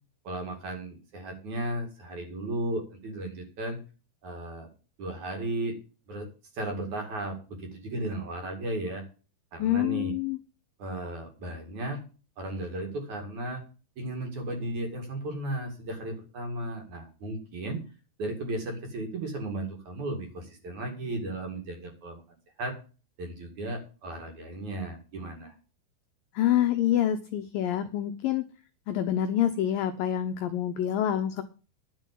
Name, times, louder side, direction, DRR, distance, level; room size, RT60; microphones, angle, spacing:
voice 1, 0.2-3.8 4.2-4.7 5.0-5.7 6.1-6.3 6.5-9.0 9.5-10.1 10.8-12.0 12.4-13.6 14.0-17.8 18.2-22.7 23.2-25.5, right 1 dB, 50° right, 4 dB, 3.2 m, -35 dB
voice 2, 9.6-10.4 26.4-28.4 28.9-31.4, left 11 dB, 80° left, 7 dB, 2.0 m, -26 dB
11.0 x 6.1 x 8.3 m, 0.35 s
omnidirectional pair, 5.1 m